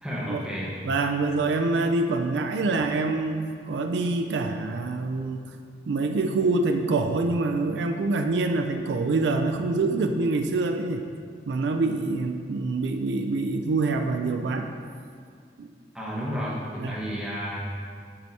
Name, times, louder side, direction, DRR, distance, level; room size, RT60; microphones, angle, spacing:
voice 1, 0.0-0.7 15.9-17.6, equal, 5° right, -7 dB, 1.2 m, -31 dB
voice 2, 0.9-5.4 5.9-11.0 11.5-14.7 15.6-15.7 16.8-17.0, right 3 dB, 80° right, 5 dB, 0.4 m, -25 dB
9.2 x 4.6 x 2.8 m, 2.2 s
head